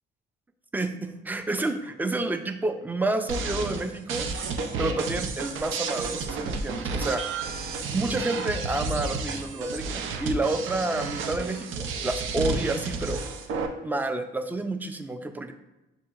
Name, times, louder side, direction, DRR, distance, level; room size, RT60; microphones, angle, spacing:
voice 1, 0.7-4.3 4.8-7.2 7.9-13.2 13.8-15.5, right 2 dB, 10° right, 8 dB, 0.4 m, -29 dB
sound 1, 3.3-13.7, right 4 dB, 80° right, 0.5 m, -31 dB
6.8 x 2.8 x 2.4 m, 0.99 s
cardioid pair, 90°, 20 cm